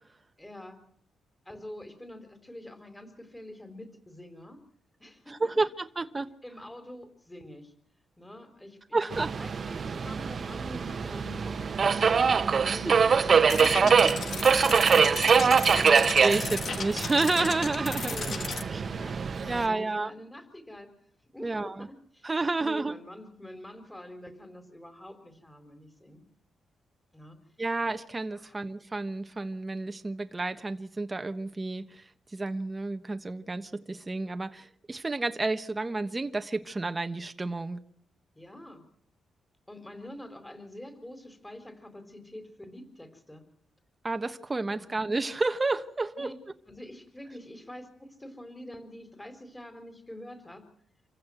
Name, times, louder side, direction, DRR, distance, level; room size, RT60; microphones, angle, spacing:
voice 1, 0.4-0.8 1.4-4.6 5.0-5.5 6.4-7.7 8.2-9.0 9.4-14.4 14.8-16.2 18.1-20.9 21.3-22.3 22.6-26.2 27.1-27.4 28.4-28.5 38.3-38.8 39.7-43.4 44.7-44.9 46.2-46.4 46.7-50.6, left 1 dB, 10° left, 8 dB, 4.3 m, -45 dB
voice 2, 5.3-6.3 8.9-9.3 12.8-12.9 15.9-18.3 18.7-18.8 19.5-20.1 21.4-21.9 22.2-22.9 27.6-37.8 44.0-46.3, right 3 dB, 20° right, 8 dB, 1.3 m, -30 dB
Subway metro underground, 9.1-19.7, right 6 dB, 45° right, 1.2 m, -24 dB
sound 1, 13.5-18.6, left 6 dB, 55° left, 1.8 m, -35 dB
27.0 x 15.5 x 7.8 m, 0.65 s
cardioid pair, 110°, 0 cm